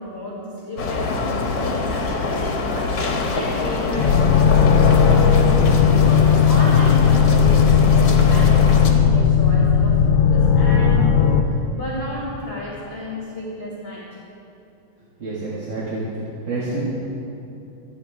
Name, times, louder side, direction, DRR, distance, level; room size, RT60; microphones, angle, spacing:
voice 1, 0.0-14.0, left 1 dB, 30° left, -6 dB, 2.3 m, -32 dB
sound 1, 0.8-8.9, left 3 dB, 60° left, 1.8 m, -25 dB
sound 2, 4.0-11.4, left 6 dB, 80° left, 1.6 m, -15 dB
voice 2, 15.2-16.0 16.5-16.8, right 3 dB, 60° right, -8 dB, 2.9 m, -27 dB
27.0 x 9.6 x 3.6 m, 2.7 s
omnidirectional pair, 2.3 m